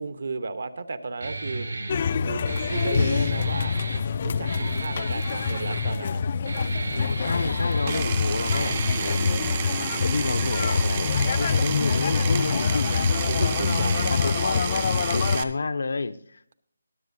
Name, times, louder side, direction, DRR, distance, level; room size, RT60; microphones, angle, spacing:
voice 1, 0.0-1.7 2.3-3.7 4.2-6.2 12.7-14.1, right 3 dB, 55° right, 12 dB, 0.9 m, -34 dB
Guitar, 1.2-9.2, right 2 dB, 85° right, 2.2 m, -34 dB
sound 1, 1.9-15.4, left 5 dB, 30° left, 0.3 m, -25 dB
voice 2, 7.0-9.5 10.0-13.6 14.1-14.6 15.1-16.5, left 4 dB, 60° left, 11 dB, 0.6 m, -30 dB
Power tool, 7.9-15.4, right 8 dB, 20° right, 0.6 m, -31 dB
22.0 x 7.5 x 2.7 m, 0.64 s
figure-of-eight pair, 175°, 0 cm